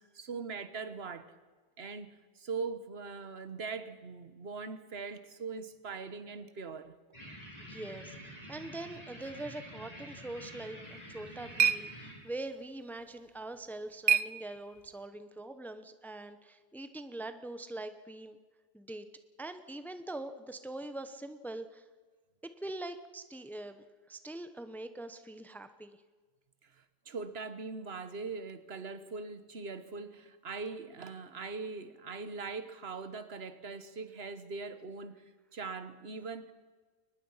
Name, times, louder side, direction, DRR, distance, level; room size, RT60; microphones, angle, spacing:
voice 1, 0.0-1.4 1.8-7.0 26.6-35.2 35.5-36.5, right 4 dB, 75° right, 1.5 m, -41 dB
sound 1, 7.1-12.1, right 1 dB, 40° left, 8.2 m, -48 dB
voice 2, 7.7-18.4 18.7-19.1 19.4-21.9 22.4-26.0, right 2 dB, ahead, 0.9 m, -43 dB
sound 2, 10.8-15.1, right 7 dB, 50° right, 0.8 m, -34 dB
23.0 x 20.0 x 5.7 m
omnidirectional pair, 1.1 m